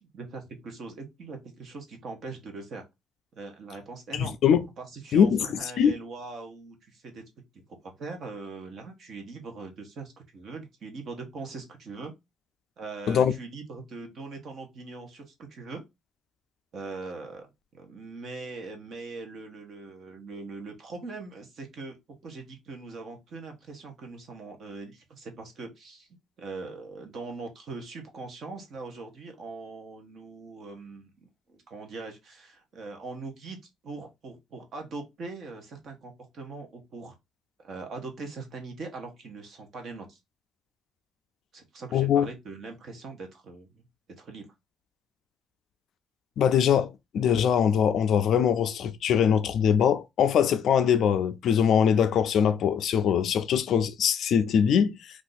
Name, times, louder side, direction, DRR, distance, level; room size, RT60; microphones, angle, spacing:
voice 1, 0.0-2.8 3.3-4.3 4.8-7.2 7.5-12.1 12.8-15.8 16.7-17.5 17.7-21.9 22.2-26.1 26.4-37.1 37.6-40.2 41.5-43.8 44.2-44.5, right 3 dB, 40° right, 0.8 m, -41 dB
voice 2, 4.1-4.6 5.1-5.4 5.8-5.9 13.1-13.3 41.9-42.3 46.4-54.9, left 8 dB, 50° left, 0.3 m, -22 dB
2.6 x 2.4 x 3.8 m
cardioid pair, 175°, 0 cm